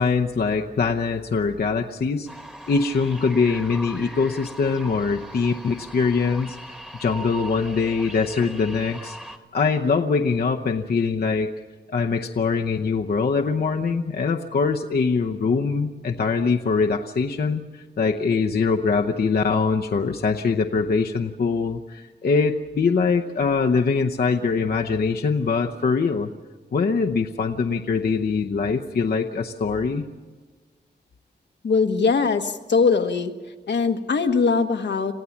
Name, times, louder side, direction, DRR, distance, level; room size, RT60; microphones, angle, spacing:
voice 1, 0.0-2.3 2.7-6.6 7.0-9.2 9.5-11.5 11.9-26.3 26.7-30.0, left 5 dB, 60° left, 2 dB, 0.8 m, -23 dB
sound 1, 2.3-9.4, right 1 dB, 5° right, 1.5 m, -40 dB
voice 2, 31.6-33.3 33.7-35.1, left 5 dB, 75° left, 6 dB, 1.3 m, -21 dB
27.5 x 16.0 x 7.2 m, 1.4 s
wide cardioid pair, 125°, 18 cm